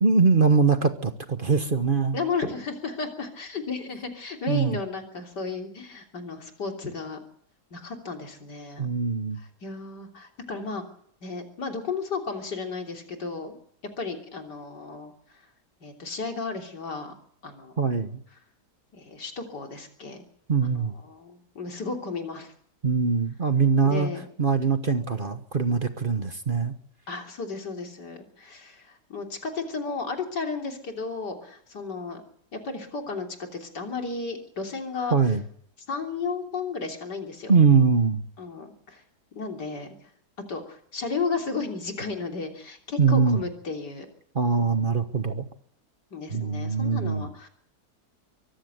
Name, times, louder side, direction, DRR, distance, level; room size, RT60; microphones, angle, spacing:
voice 1, 0.0-2.2 4.5-4.8 8.8-9.4 17.8-18.2 20.5-20.9 22.8-24.1 24.4-26.7 35.1-35.4 37.5-38.2 43.0-43.4 44.3-45.4 46.3-47.3, right 5 dB, 35° right, 9 dB, 1.3 m, -22 dB
voice 2, 2.1-7.2 7.7-8.9 9.6-10.8 11.2-13.6 14.0-15.1 15.8-17.1 17.4-17.7 18.9-20.2 20.7-22.5 23.8-24.3 27.1-32.2 32.5-33.3 33.5-35.2 35.9-37.5 38.4-39.0 39.4-39.9 40.5-44.1 44.6-44.9 46.1-47.5, left 4 dB, 80° left, 3 dB, 3.9 m, -33 dB
24.0 x 14.5 x 8.0 m, 0.66 s
omnidirectional pair, 1.8 m